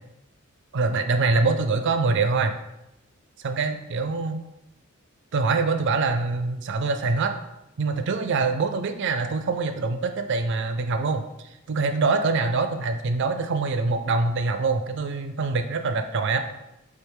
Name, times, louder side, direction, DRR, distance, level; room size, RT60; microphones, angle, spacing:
voice 1, 0.7-2.5 3.4-4.4 5.3-7.3 7.8-11.2 11.7-16.4, right 3 dB, 55° right, 8 dB, 0.4 m, -24 dB
3.4 x 3.4 x 4.7 m, 0.89 s
head